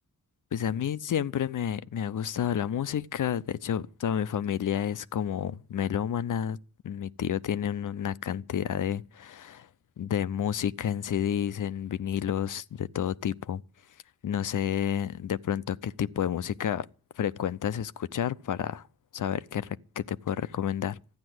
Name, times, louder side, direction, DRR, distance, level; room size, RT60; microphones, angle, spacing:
voice 1, 0.5-6.6 6.8-9.7 10.0-13.6 14.2-16.9 17.2-18.9 19.1-21.0, left 9 dB, 60° left, 0.7 m, -30 dB
13.0 x 9.6 x 7.8 m
supercardioid pair, 50°, 36 cm